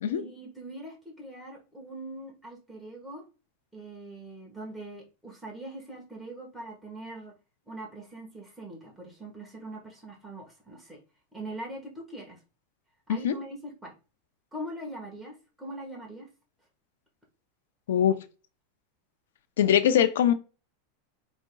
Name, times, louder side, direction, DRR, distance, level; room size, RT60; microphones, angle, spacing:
voice 1, 0.0-3.2 3.7-7.3 7.7-11.0 11.3-12.4 13.1-13.9 14.5-16.3, right 1 dB, 5° right, 1.4 m, -42 dB
voice 2, 19.6-20.3, left 9 dB, 90° left, 0.5 m, -22 dB
5.0 x 3.6 x 2.3 m
supercardioid pair, 150°, 0 cm